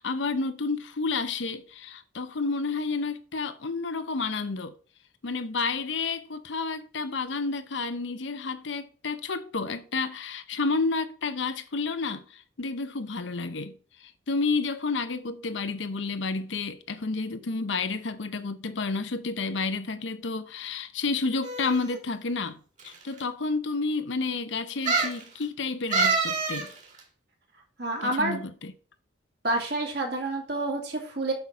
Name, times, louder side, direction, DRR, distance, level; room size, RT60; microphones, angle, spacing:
voice 1, 0.0-4.7 5.2-13.7 14.0-26.7 28.0-28.7, left 4 dB, 75° left, 0.8 m, -30 dB
sound 1, 21.4-22.0 22.8-22.9 23.2-23.3 24.9-25.2 25.9-26.7 27.0-27.1, right 4 dB, 40° right, 2.2 m, -26 dB
voice 2, 27.8-28.4 29.4-31.3, right 2 dB, 60° right, 2.6 m, -28 dB
8.0 x 5.8 x 4.8 m
head